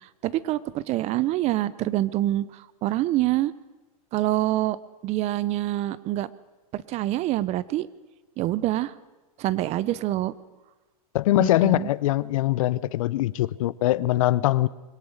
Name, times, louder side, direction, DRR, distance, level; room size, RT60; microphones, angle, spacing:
voice 1, 0.2-3.5 4.1-4.8 5.0-6.3 6.7-7.9 8.4-8.9 9.4-10.3 11.4-11.9, right 15 dB, 35° right, 0.8 m, -26 dB
voice 2, 11.1-14.7, left 15 dB, 65° left, 0.7 m, -22 dB
23.0 x 17.5 x 6.6 m
hypercardioid pair, 120°, 18 cm